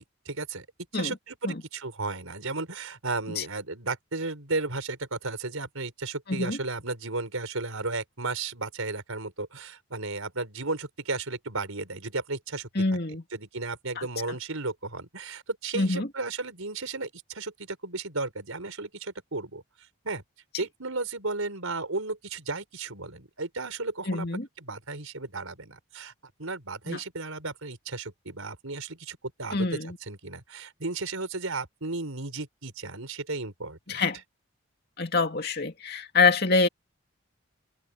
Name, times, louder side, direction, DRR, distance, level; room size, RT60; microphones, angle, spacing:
voice 1, 0.2-0.6 0.9-13.0 13.3-19.6 20.0-20.2 20.6-24.3 24.6-26.1 26.4-34.0, right 3 dB, 80° right, 5.0 m, -34 dB
voice 2, 12.8-13.2 14.0-14.1 15.7-16.1 24.1-24.5 26.9-27.0 29.5-30.0 33.9-34.2 35.0-36.7, left 3 dB, 50° left, 2.6 m, -25 dB
open air
head